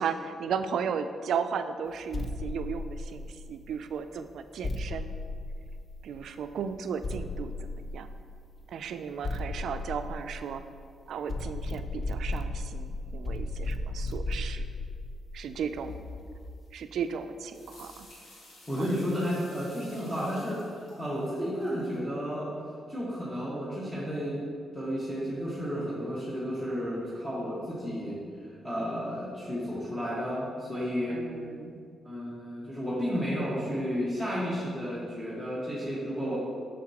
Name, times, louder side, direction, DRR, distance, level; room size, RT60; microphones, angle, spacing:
voice 1, 0.0-5.1 6.0-8.1 8.7-10.6 11.1-14.7 15.3-16.0 16.7-18.1 18.8-18.9 31.1-31.8, right 6 dB, 80° right, 10 dB, 0.3 m, -35 dB
sound 1, 2.1-3.6 4.6-6.2 7.0-8.4 9.2-10.8 11.3-16.6, left 2 dB, 45° left, 0.4 m, -35 dB
sound 2, 17.5-22.0, left 1 dB, 80° left, 1.4 m, -53 dB
voice 2, 18.7-22.5 22.9-24.4 24.7-28.1 28.4-31.2 32.0-36.4, equal, 15° left, -8 dB, 1.5 m, -32 dB
6.2 x 5.9 x 2.9 m, 2.2 s
cardioid pair, 75°, 0 cm